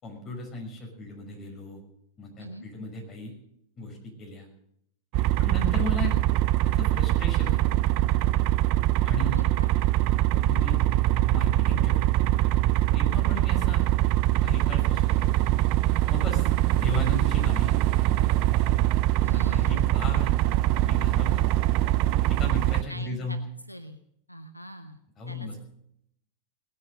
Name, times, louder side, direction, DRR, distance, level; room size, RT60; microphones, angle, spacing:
voice 1, 0.0-1.8 2.2-3.3 3.8-4.5 5.4-6.1 6.6-7.7 9.0-9.5 10.4-10.8 11.3-12.2 12.9-13.8 14.4-15.4 16.1-18.3 19.3-20.3 20.8-21.4 22.3-23.5 25.2-25.6, left 2 dB, 30° left, 1 dB, 5.9 m, -36 dB
sound 1, 5.1-22.8, right 14 dB, 45° right, 0.5 m, -23 dB
voice 2, 9.3-9.8 19.2-20.1 22.9-23.4 23.7-24.0 24.3-25.0 25.3-25.6, equal, 90° left, 9 dB, 0.8 m, -42 dB
19.0 x 9.7 x 6.6 m, 0.73 s
figure-of-eight pair, 90°, 0 cm